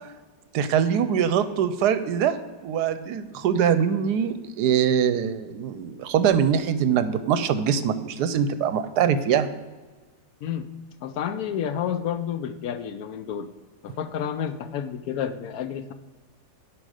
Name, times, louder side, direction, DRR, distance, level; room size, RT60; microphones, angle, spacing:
voice 1, 0.5-2.4 2.6-9.6, right 8 dB, 75° right, 11 dB, 1.1 m, -23 dB
voice 2, 11.0-13.5 13.8-15.9, left 8 dB, 70° left, 10 dB, 0.9 m, -30 dB
10.5 x 5.0 x 4.9 m, 1.3 s
omnidirectional pair, 1.9 m